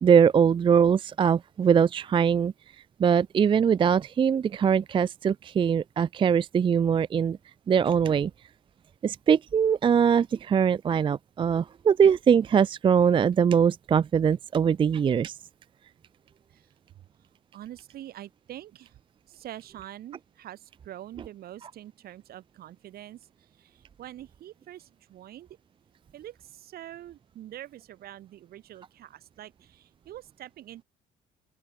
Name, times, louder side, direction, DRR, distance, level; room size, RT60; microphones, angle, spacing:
voice 1, 0.0-2.5 3.0-7.4 7.7-8.3 9.0-15.4, right 7 dB, 30° right, 0.4 m, -22 dB
voice 2, 17.5-19.0 19.3-23.3 23.6-25.5 26.1-30.8, right 12 dB, 65° right, 2.5 m, -45 dB
open air
cardioid pair, 110°, 17 cm